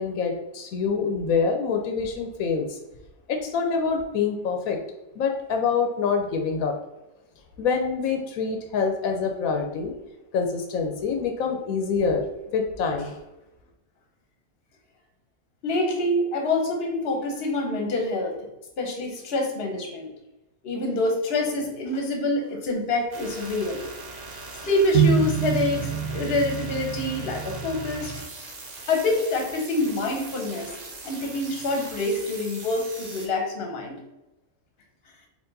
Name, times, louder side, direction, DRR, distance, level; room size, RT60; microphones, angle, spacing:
voice 1, 0.0-2.8 3.3-4.8 5.2-6.7 7.6-9.9 10.3-12.2 12.5-13.1, left 5 dB, 85° left, 3 dB, 1.1 m, -26 dB
voice 2, 15.6-18.4 18.8-20.1 20.6-23.8 24.6-28.2 28.9-30.7 31.0-34.0, left 2 dB, 50° left, 2 dB, 1.0 m, -26 dB
sound 1, 23.1-33.3, right 3 dB, 40° right, 0.7 m, -40 dB
sound 2, 24.9-28.2, right 7 dB, 85° right, 1.1 m, -26 dB
4.5 x 2.5 x 3.9 m, 0.94 s
omnidirectional pair, 1.4 m